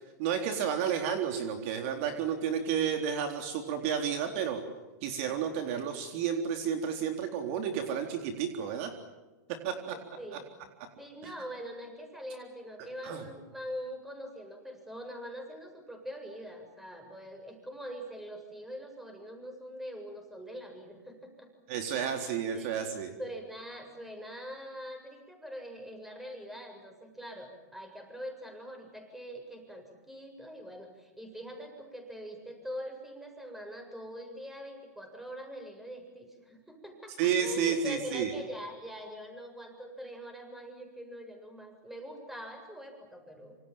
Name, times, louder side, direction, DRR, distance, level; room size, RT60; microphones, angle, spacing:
voice 1, 0.2-4.6 5.0-8.9 9.6-9.9 13.0-13.2 21.7-23.1 37.2-38.3, right 8 dB, 50° right, 5 dB, 3.9 m, -31 dB
voice 2, 9.9-10.5 11.0-21.5 22.0-43.6, equal, 5° right, 4 dB, 7.6 m, -43 dB
27.5 x 27.0 x 7.6 m, 1.1 s
hypercardioid pair, 130°, 9 cm